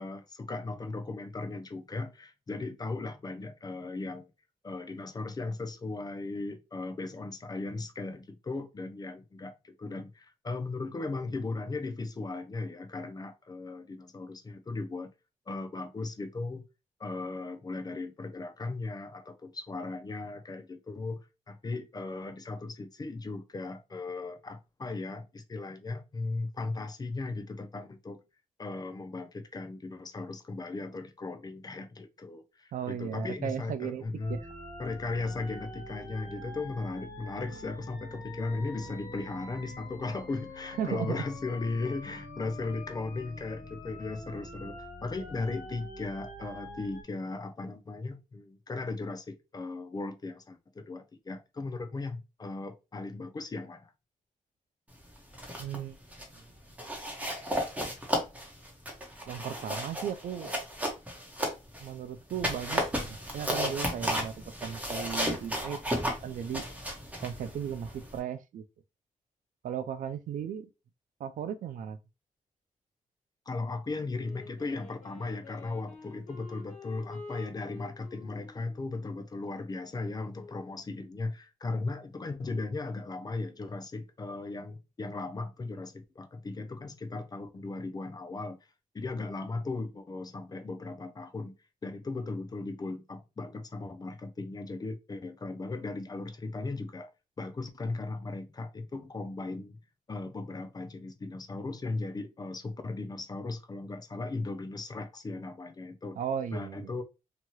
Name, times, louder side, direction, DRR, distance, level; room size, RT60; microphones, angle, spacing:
voice 1, 0.0-4.3 4.6-15.1 15.5-16.6 17.0-21.2 21.5-28.2 28.6-34.4 34.8-53.9 73.5-88.6 88.9-91.5 91.8-97.1 97.4-99.8 100.1-106.2 106.5-107.0, left 3 dB, 30° left, 0.5 m, -37 dB
voice 2, 32.7-34.5 40.8-41.2 55.6-56.0 59.3-60.5 61.8-65.8 66.2-66.7 67.2-68.6 69.6-70.7 71.2-72.0 106.1-106.9, right 9 dB, 75° right, 0.4 m, -36 dB
sound 1, 34.2-47.0, left 1 dB, 80° left, 1.1 m, -45 dB
sound 2, 55.2-55.8 56.1-56.4 56.8-61.9 62.3-68.2, equal, 10° right, 1.0 m, -34 dB
Wind instrument woodwind instrument, 74.1-80.8, left 4 dB, 60° left, 1.2 m, -49 dB
2.8 x 2.3 x 3.0 m
cardioid pair, 100°, 14 cm